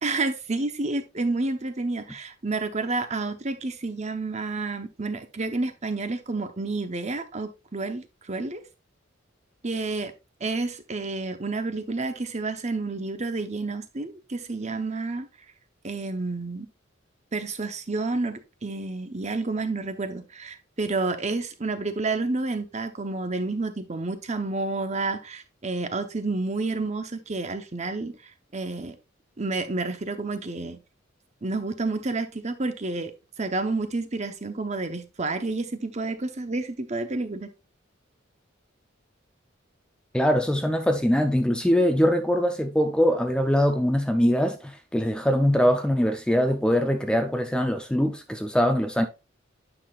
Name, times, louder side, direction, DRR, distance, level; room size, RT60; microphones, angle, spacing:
voice 1, 0.0-8.6 9.6-10.1 10.4-15.3 15.8-16.7 17.3-28.1 28.5-29.0 29.4-30.8 31.4-33.1 33.4-37.5, right 3 dB, 35° right, 0.9 m, -30 dB
voice 2, 40.1-49.0, equal, 5° left, 0.5 m, -22 dB
8.9 x 5.9 x 2.4 m
head